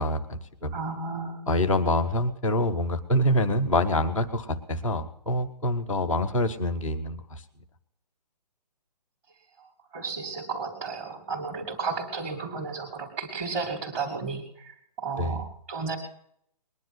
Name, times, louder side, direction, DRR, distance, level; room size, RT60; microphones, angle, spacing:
voice 1, 0.0-0.8 1.5-7.4 15.2-15.5, left 1 dB, ahead, -6 dB, 0.5 m, -26 dB
voice 2, 0.7-1.4 9.9-14.7 15.0-16.0, right 4 dB, 20° right, -4 dB, 2.4 m, -33 dB
20.5 x 10.5 x 6.1 m, 0.70 s
hypercardioid pair, 175°, 21 cm